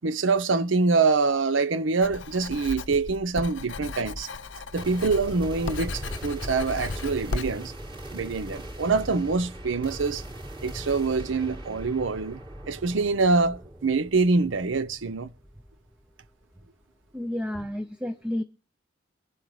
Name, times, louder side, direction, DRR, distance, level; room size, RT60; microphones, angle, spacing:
voice 1, 0.0-4.3 4.7-7.7 8.1-10.2 10.6-12.4 12.7-15.3, right 4 dB, 90° right, 0.7 m, -25 dB
Writing, 2.0-7.5, left 3 dB, 80° left, 0.7 m, -36 dB
sound 1, 4.8-16.1, right 1 dB, 25° right, 3.4 m, -40 dB
voice 2, 17.1-18.4, left 1 dB, 5° right, 0.5 m, -31 dB
23.0 x 7.7 x 3.1 m
head